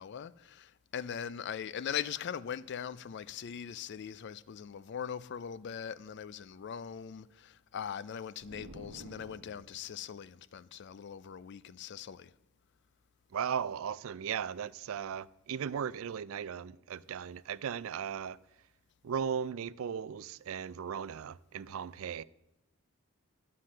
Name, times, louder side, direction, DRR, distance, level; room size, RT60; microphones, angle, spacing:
voice 1, 0.0-12.3, left 8 dB, 50° left, 0.4 m, -41 dB
sound 1, 8.4-10.0, right 1 dB, 90° right, 1.1 m, -51 dB
voice 2, 13.3-18.4 19.0-22.2, right 7 dB, 65° right, 0.4 m, -37 dB
12.0 x 7.5 x 6.4 m
head